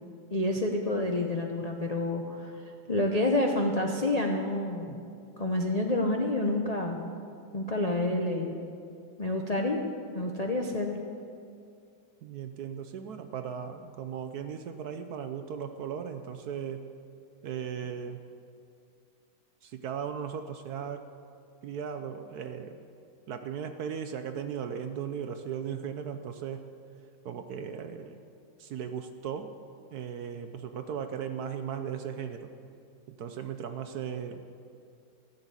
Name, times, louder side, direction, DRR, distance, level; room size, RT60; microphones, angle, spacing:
voice 1, 0.3-2.5 2.9-5.1 5.4-7.0 7.5-8.6 9.2-9.8 10.1-10.9, left 2 dB, 90° left, 1 dB, 0.3 m, -28 dB
voice 2, 12.2-16.8 17.4-18.2 19.6-21.1 21.6-22.8 23.3-26.6 27.2-28.2 28.6-29.5 29.9-32.5 33.1-34.5, right 7 dB, 65° right, 8 dB, 1.0 m, -37 dB
14.5 x 7.3 x 8.1 m, 2.4 s
omnidirectional pair, 2.1 m